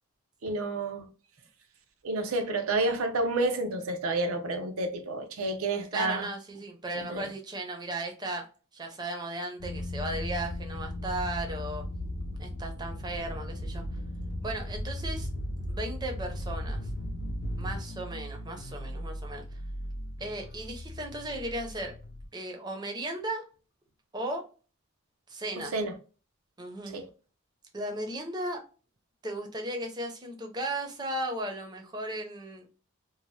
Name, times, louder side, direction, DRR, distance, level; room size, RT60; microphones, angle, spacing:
voice 1, 0.4-1.1 2.0-6.3 6.9-7.3 25.7-25.9 26.9-27.1, right 2 dB, 85° right, 0.6 m, -30 dB
voice 2, 5.9-8.5 8.7-11.8 12.4-13.9 14.4-15.3 15.7-16.9 17.6-19.4 20.2-21.9 22.3-23.5 24.1-24.4 25.3-25.7 26.6-26.9 27.7-28.7 29.2-32.7, right 1 dB, 20° right, 0.5 m, -36 dB
sound 1, 9.6-17.8, left 1 dB, 90° left, 0.7 m, -36 dB
sound 2, 13.2-22.3, equal, 55° left, 0.6 m, -41 dB
2.7 x 2.0 x 3.1 m
head